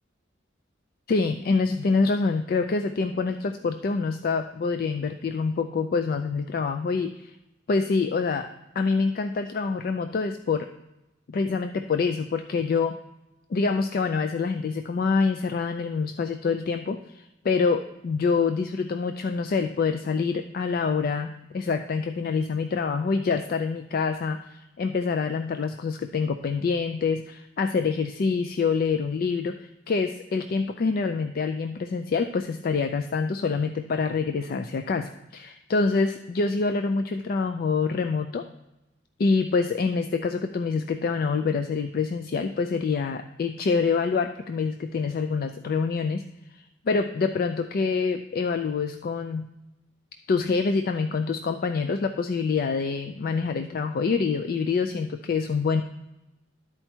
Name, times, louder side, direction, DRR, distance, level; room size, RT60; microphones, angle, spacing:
voice 1, 1.1-7.3 7.7-8.5 8.8-10.7 11.3-13.0 13.5-38.4 39.2-46.2 46.5-49.5 50.3-55.8, left 4 dB, 50° left, 7 dB, 0.3 m, -26 dB
11.0 x 4.5 x 4.4 m, 0.96 s
head